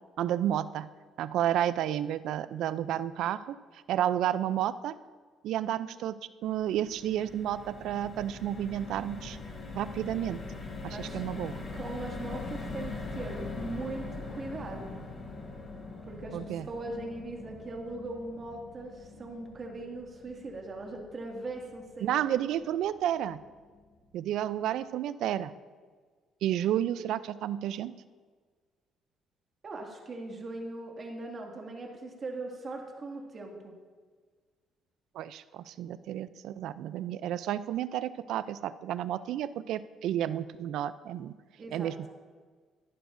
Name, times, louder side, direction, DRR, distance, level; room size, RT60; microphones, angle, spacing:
voice 1, 0.2-0.9 1.2-4.9 5.4-9.4 9.7-10.4 10.8-11.6 16.3-16.7 22.0-23.4 24.1-25.5 26.4-27.9 35.1-41.3 41.7-42.1, right 11 dB, 75° right, 15 dB, 0.4 m, -31 dB
sound 1, 6.4-22.7 23.1-23.3 23.5-23.8, left 3 dB, 40° left, 2.5 m, -42 dB
voice 2, 10.8-11.2 11.7-14.9 16.1-22.2 29.6-33.7 41.6-41.9, right 2 dB, 40° right, 1 dB, 2.1 m, -40 dB
14.5 x 11.5 x 2.6 m, 1.5 s
cardioid pair, 100°, 0 cm